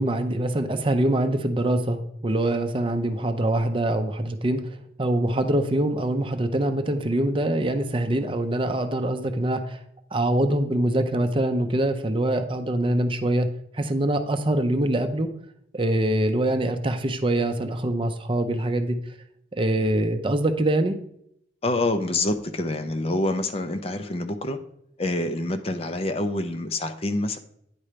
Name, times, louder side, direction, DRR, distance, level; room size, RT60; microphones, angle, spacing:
voice 1, 0.0-9.8 10.1-13.5 13.7-15.3 15.7-19.0 19.6-21.0, right 1 dB, 30° right, 8 dB, 0.6 m, -24 dB
voice 2, 21.6-24.6 25.0-27.4, left 2 dB, 35° left, 9 dB, 0.6 m, -26 dB
9.7 x 4.3 x 5.0 m, 0.71 s
head